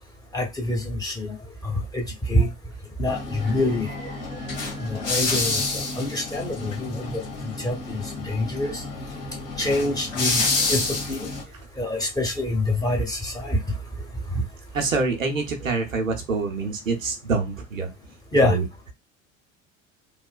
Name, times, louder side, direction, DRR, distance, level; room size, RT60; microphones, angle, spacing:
voice 1, 0.3-1.4 1.6-2.5 3.0-4.1 4.8-8.8 9.6-10.8 11.1-11.3 11.8-13.6 18.3-18.6, left 1 dB, 10° left, 1 dB, 0.9 m, -26 dB
sound 1, 3.1-11.4, left 3 dB, 65° left, 1.4 m, -29 dB
voice 2, 4.3-5.1 14.7-17.9 18.4-18.6, right 4 dB, 90° right, 3 dB, 0.6 m, -26 dB
3.1 x 2.0 x 2.3 m, 0.21 s
figure-of-eight pair, 70°, 39 cm